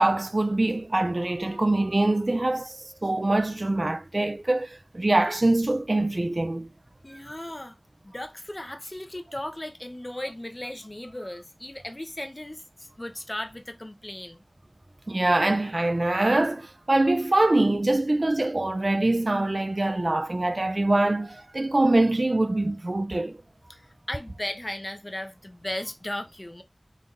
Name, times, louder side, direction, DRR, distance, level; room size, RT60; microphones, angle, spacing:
voice 1, 0.0-2.8 3.0-6.7 15.1-23.4, right 2 dB, 60° right, 0.3 m, -24 dB
voice 2, 7.0-7.8 8.0-14.4 23.7-26.6, left 1 dB, 40° left, 0.7 m, -36 dB
3.9 x 3.6 x 2.5 m
wide cardioid pair, 40°, 0 cm